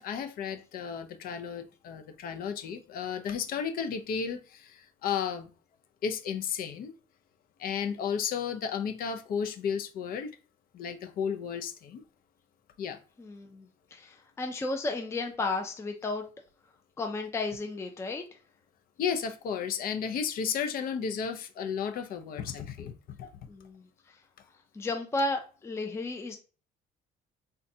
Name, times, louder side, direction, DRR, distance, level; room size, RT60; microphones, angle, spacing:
voice 1, 0.0-5.5 6.0-6.9 7.6-10.3 10.7-12.0 12.8-13.0 19.0-23.3, left 7 dB, 60° left, 0.6 m, -33 dB
voice 2, 13.2-16.2 17.0-18.2 23.5-24.2 24.7-26.4, left 2 dB, 15° left, 0.5 m, -33 dB
3.8 x 2.2 x 2.6 m
cardioid pair, 110°, 17 cm